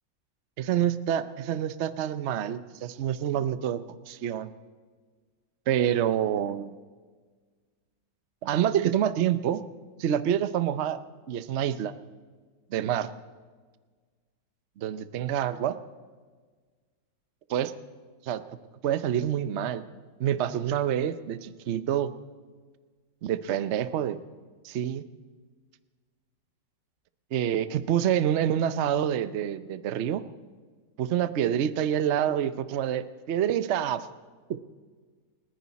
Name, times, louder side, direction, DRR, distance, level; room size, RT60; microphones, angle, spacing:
voice 1, 0.6-4.5 5.7-6.7 8.4-9.6 10.0-11.0 11.3-11.9 12.7-13.1 14.8-15.8 17.5-17.7 18.2-18.6 18.8-19.8 20.2-22.1 23.2-24.2 24.6-25.0 27.3-30.2 31.0-34.1 34.5-34.6, right 10 dB, 60° right, 13 dB, 0.7 m, -27 dB
29.5 x 10.5 x 4.1 m, 1.5 s
omnidirectional pair, 1.9 m